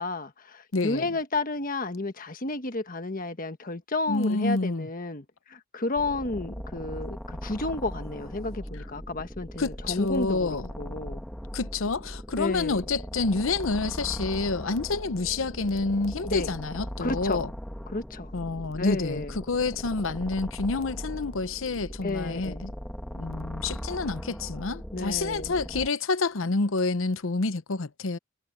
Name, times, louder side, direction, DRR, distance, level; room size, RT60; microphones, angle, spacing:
voice 1, 0.0-11.2 12.4-12.8 16.3-16.5 17.0-17.4 17.9-18.3 18.8-19.4 22.0-22.6 24.9-25.5, left 2 dB, 45° left, 1.4 m, -32 dB
voice 2, 0.7-1.1 4.1-4.9 9.6-10.7 11.5-17.5 18.3-22.7 23.1-28.2, left 3 dB, 80° left, 0.8 m, -28 dB
sound 1, 6.0-25.9, equal, 5° left, 1.5 m, -39 dB
head